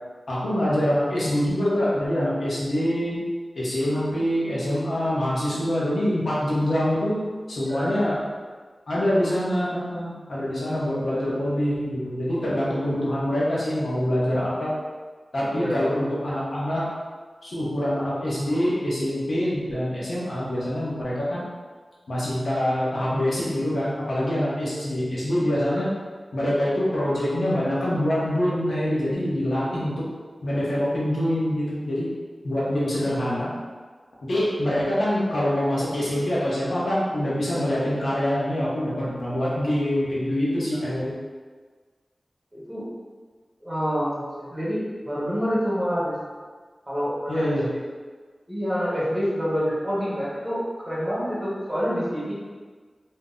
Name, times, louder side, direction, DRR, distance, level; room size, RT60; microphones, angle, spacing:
voice 1, 0.3-3.2 3.6-8.2 8.9-14.7 15.3-16.9 17.4-21.4 22.1-25.9 26.3-30.1 30.4-32.1 32.4-33.5 34.3-41.1 47.3-47.7, equal, 85° left, -7 dB, 0.8 m, -25 dB
voice 2, 15.5-15.8 25.7-25.8 40.7-40.8 42.5-42.8 43.6-46.1 46.9-47.9 48.5-52.3, equal, 20° right, -8 dB, 1.1 m, -27 dB
2.7 x 2.0 x 3.6 m, 1.5 s
wide cardioid pair, 85°, 0 cm